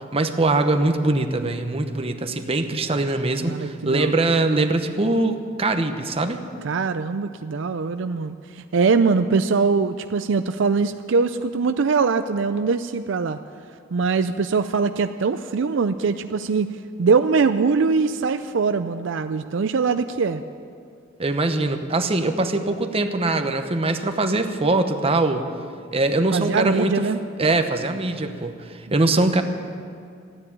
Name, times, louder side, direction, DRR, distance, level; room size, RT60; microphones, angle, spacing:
voice 1, 0.0-6.5 21.2-25.5 25.9-27.1 27.4-29.4, right 2 dB, 30° right, 7 dB, 0.9 m, -22 dB
voice 2, 3.4-4.1 6.6-13.4 13.9-16.7 17.0-20.4 26.3-27.2, right 4 dB, 70° right, 10 dB, 0.5 m, -22 dB
14.0 x 9.8 x 9.8 m, 2.3 s
head